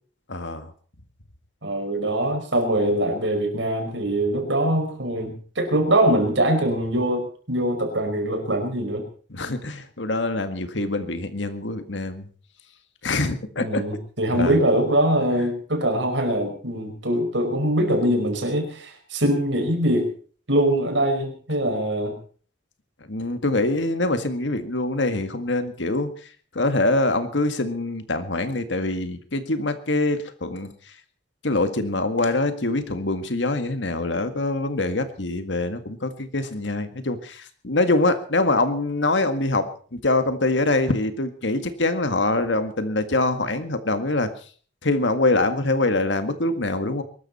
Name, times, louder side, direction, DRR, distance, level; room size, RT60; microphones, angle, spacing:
voice 1, 0.3-0.7 9.3-12.3 13.0-13.8 14.3-14.6 15.3-15.5 23.1-30.9 31.4-44.3 44.8-47.0, left 2 dB, 80° left, 9 dB, 1.9 m, -24 dB
voice 2, 1.6-9.1 13.6-20.1 20.5-22.1, right 1 dB, 85° right, 4 dB, 5.1 m, -23 dB
22.5 x 13.0 x 4.3 m, 0.42 s
head